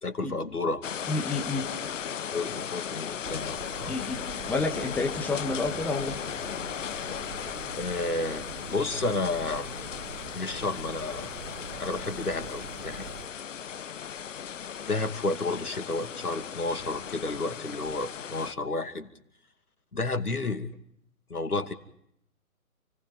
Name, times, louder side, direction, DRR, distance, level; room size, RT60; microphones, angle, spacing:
voice 1, 0.0-0.8 2.3-4.0 7.7-9.7 10.3-11.3 11.8-13.1 14.9-19.1 19.9-20.7 21.3-21.7, left 2 dB, 85° left, 8 dB, 2.5 m, -31 dB
sound 1, 0.8-18.5, left 8 dB, 55° left, 0.8 m, -37 dB
voice 2, 1.1-1.7 3.9-4.2 4.5-6.2, left 3 dB, 5° left, 2 dB, 1.4 m, -29 dB
sound 2, 3.2-13.3, right 8 dB, 30° right, 1.1 m, -45 dB
29.0 x 19.0 x 5.3 m, 0.74 s
figure-of-eight pair, 135°, 44 cm